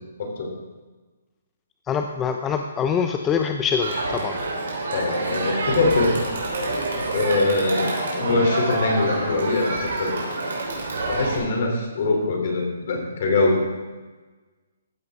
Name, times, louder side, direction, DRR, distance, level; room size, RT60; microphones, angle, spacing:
voice 1, 0.2-0.5 4.9-6.2 7.1-10.1 11.1-13.6, left 3 dB, 50° left, 1 dB, 3.1 m, -23 dB
voice 2, 1.9-4.4, left 6 dB, 15° left, 5 dB, 0.4 m, -24 dB
Crowd, 3.8-11.4, right 2 dB, 70° right, 3.6 m, -27 dB
14.5 x 8.7 x 3.6 m, 1.3 s
hypercardioid pair, 165°, 0 cm